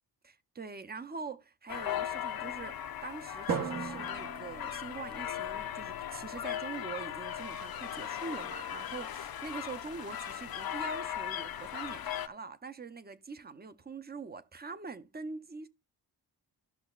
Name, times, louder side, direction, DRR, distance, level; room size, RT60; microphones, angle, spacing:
voice 1, 0.2-15.7, right 4 dB, 25° right, 0.6 m, -44 dB
sound 1, 1.7-12.3, left 10 dB, 60° left, 0.7 m, -38 dB
Drum, 3.5-5.8, right 6 dB, 55° right, 0.9 m, -38 dB
14.5 x 6.2 x 2.3 m
wide cardioid pair, 150°, 41 cm